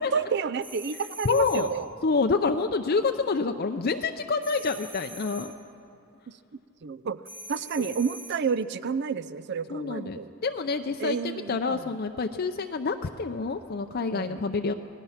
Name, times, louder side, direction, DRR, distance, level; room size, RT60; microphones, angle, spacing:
voice 1, 0.0-1.9 6.8-7.2 7.5-10.3 11.0-11.8 14.1-14.4, right 6 dB, 50° right, 15 dB, 0.4 m, -30 dB
sound 1, 0.6-1.8 4.4-5.6 7.2-8.5, right 1 dB, 10° right, 1.3 m, -44 dB
voice 2, 1.2-1.7 2.0-5.5 7.8-7.9 9.7-14.7, left 4 dB, 45° left, 6 dB, 0.5 m, -27 dB
26.5 x 18.5 x 5.8 m, 2.5 s
head